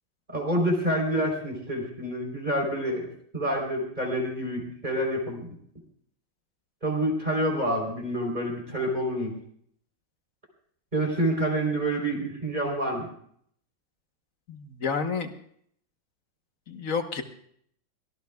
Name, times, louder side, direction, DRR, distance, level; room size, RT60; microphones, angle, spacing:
voice 1, 0.3-3.1 3.3-5.5 6.8-9.3 10.9-13.1, right 1 dB, 20° right, 0 dB, 3.9 m, -27 dB
voice 2, 14.5-15.3 16.7-17.2, left 5 dB, 50° left, 6 dB, 1.4 m, -30 dB
23.5 x 18.0 x 2.4 m, 0.64 s
omnidirectional pair, 2.0 m